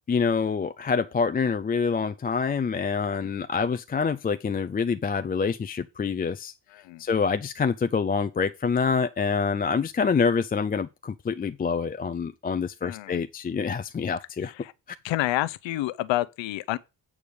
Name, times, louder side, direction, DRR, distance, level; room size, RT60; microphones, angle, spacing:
voice 1, 0.1-6.5 7.0-14.5, left 5 dB, 20° left, 0.4 m, -26 dB
voice 2, 6.7-7.0 12.8-13.2 14.4-14.7 15.0-16.8, left 16 dB, 80° left, 0.7 m, -29 dB
8.5 x 4.8 x 5.3 m
cardioid pair, 110°, 44 cm